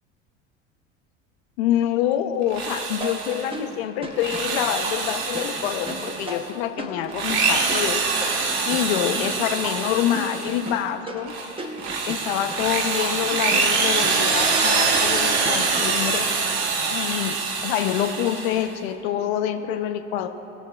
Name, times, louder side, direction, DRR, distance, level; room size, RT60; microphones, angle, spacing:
voice 1, 1.6-8.0 8.7-11.4 12.1-16.3 16.9-20.3, left 10 dB, 55° left, 7 dB, 0.6 m, -26 dB
Drill, 2.4-3.6 4.1-6.5 7.0-10.8 11.2-18.7, right 4 dB, 55° right, 1.0 m, -25 dB
sound 1, 3.0-16.1, right 1 dB, 15° right, 0.9 m, -36 dB
20.0 x 6.9 x 2.3 m, 3.0 s
figure-of-eight pair, 65°, 38 cm